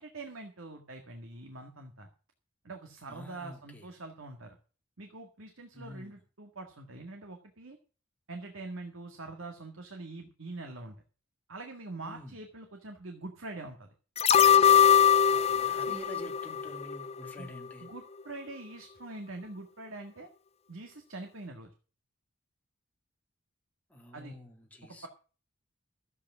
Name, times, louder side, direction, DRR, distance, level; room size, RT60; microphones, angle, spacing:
voice 1, 0.0-2.1 2.6-4.6 5.0-7.8 8.3-11.0 11.5-13.9 15.9-16.0 17.4-17.5 17.8-20.3 20.7-21.7 24.1-24.3 24.8-25.1, right 2 dB, 75° right, 2.0 m, -44 dB
voice 2, 3.1-3.9 5.7-6.1 12.0-12.4 15.3-17.9 23.9-25.1, equal, 5° left, 2.5 m, -47 dB
sound 1, 14.2-17.3 17.6-17.7, left 8 dB, 30° left, 0.5 m, -22 dB
13.5 x 8.4 x 6.2 m
head